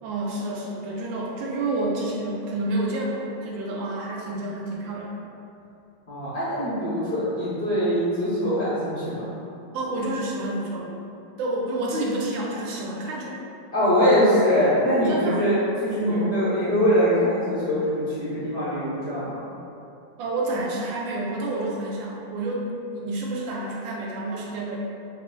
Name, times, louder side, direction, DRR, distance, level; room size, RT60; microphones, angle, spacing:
voice 1, 0.0-5.1 9.7-10.9 11.4-13.4 14.9-15.5 16.0-16.4 20.2-22.7 22.9-24.8, right 2 dB, 90° right, -3 dB, 1.4 m, -29 dB
voice 2, 6.1-9.3 13.7-19.4, equal, 50° left, -12 dB, 0.8 m, -23 dB
5.2 x 2.5 x 2.2 m, 2.7 s
omnidirectional pair, 2.0 m